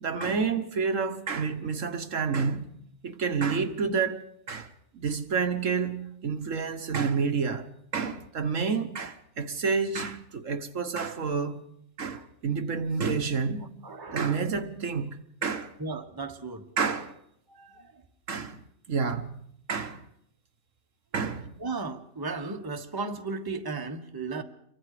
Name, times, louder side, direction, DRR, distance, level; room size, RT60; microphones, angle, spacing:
voice 1, 0.0-4.2 4.5-11.6 12.0-13.7 14.1-15.7 16.8-17.2 18.3-18.6 18.9-19.4 19.7-20.0 21.1-21.5, right 5 dB, 65° right, 1.5 m, -29 dB
voice 2, 13.8-14.3 15.8-16.6 17.5-17.9 21.6-24.4, right 3 dB, 15° right, 1.3 m, -35 dB
27.5 x 23.5 x 5.0 m
omnidirectional pair, 1.5 m